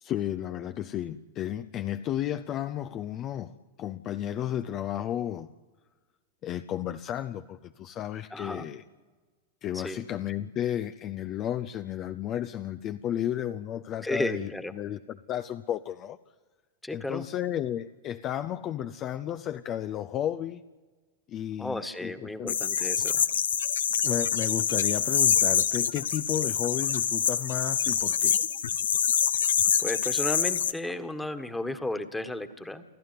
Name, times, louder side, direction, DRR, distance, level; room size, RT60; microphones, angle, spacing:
voice 1, 0.0-3.5 3.8-5.5 6.4-8.8 9.6-14.5 14.7-15.0 15.3-16.2 16.9-20.6 21.3-22.1 22.4-22.5 24.0-28.3, left 11 dB, 35° left, 10 dB, 0.7 m, -33 dB
voice 2, 8.3-8.7 9.7-10.0 14.0-14.7 16.8-17.3 21.6-23.2 29.8-32.8, left 1 dB, 5° left, 10 dB, 1.6 m, -33 dB
sound 1, 22.5-30.7, left 8 dB, 65° left, 0.9 m, -26 dB
29.0 x 12.5 x 9.4 m, 1.4 s
figure-of-eight pair, 90°, 0 cm